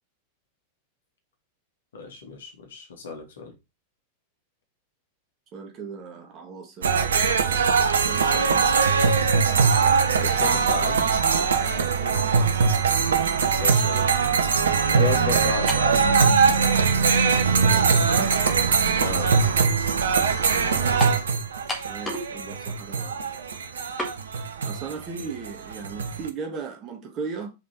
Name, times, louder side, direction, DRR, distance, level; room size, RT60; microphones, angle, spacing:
voice 1, 1.9-3.5 10.2-11.1 13.6-14.1 14.9-16.1 19.0-19.3, left 4 dB, 65° left, 2.4 m, -32 dB
voice 2, 5.5-7.0 7.5-7.8 8.0-9.5 11.3-11.5 17.5-18.3 21.8-23.2 24.6-27.5, right 5 dB, 35° right, 2.1 m, -37 dB
sound 1, 6.8-26.3, right 5 dB, 65° right, 1.0 m, -21 dB
sound 2, 15.7-16.0 16.9-17.0 21.0-21.2 21.7-22.3 22.6-22.7 24.0-24.2, equal, 10° left, 2.1 m, -31 dB
5.4 x 5.1 x 4.7 m
figure-of-eight pair, 90°, 0 cm